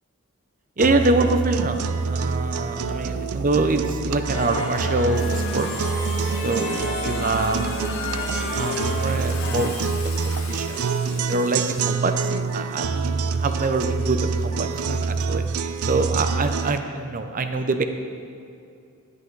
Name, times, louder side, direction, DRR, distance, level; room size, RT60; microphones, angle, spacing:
voice 1, 0.8-5.7 6.4-7.6 8.5-10.8 11.3-15.4 15.8-17.8, right 2 dB, 40° right, 7 dB, 0.7 m, -25 dB
sound 1, 0.8-16.8, right 4 dB, 85° right, 0.5 m, -26 dB
sound 2, 4.3-9.7, left 2 dB, 55° left, 1.9 m, -31 dB
Water / Water tap faucet / Sink (filling or washing), 5.1-11.9, left 5 dB, 80° left, 1.5 m, -41 dB
12.5 x 10.5 x 4.0 m, 2.5 s
head